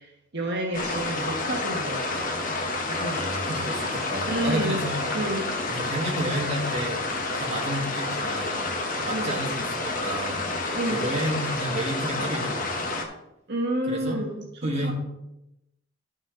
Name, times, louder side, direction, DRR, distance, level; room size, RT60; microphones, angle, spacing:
voice 1, 0.0-2.6 2.9-3.2 4.3-4.8 5.1-5.5 9.1-9.3 10.7-11.1 13.5-14.4 14.8-14.9, right 1 dB, 60° right, -1 dB, 1.4 m, -30 dB
sound 1, 0.7-13.0, left 2 dB, 45° left, 1.2 m, -29 dB
voice 2, 3.1-5.1 5.7-7.0 7.3-10.5 10.9-12.9 13.9-14.2 14.6-14.9, right 1 dB, 35° right, -2 dB, 1.9 m, -31 dB
11.5 x 6.1 x 3.9 m, 0.87 s
head